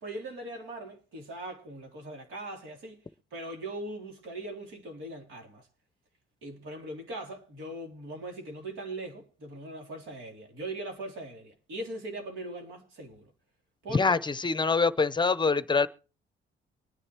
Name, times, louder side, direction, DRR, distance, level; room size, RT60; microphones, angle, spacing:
voice 1, 0.0-3.0 3.3-5.7 6.4-13.3 13.8-14.2, right 1 dB, 80° right, 3.1 m, -40 dB
voice 2, 13.9-15.9, left 4 dB, 25° left, 0.7 m, -25 dB
24.0 x 9.8 x 3.0 m
cardioid pair, 90°, 20 cm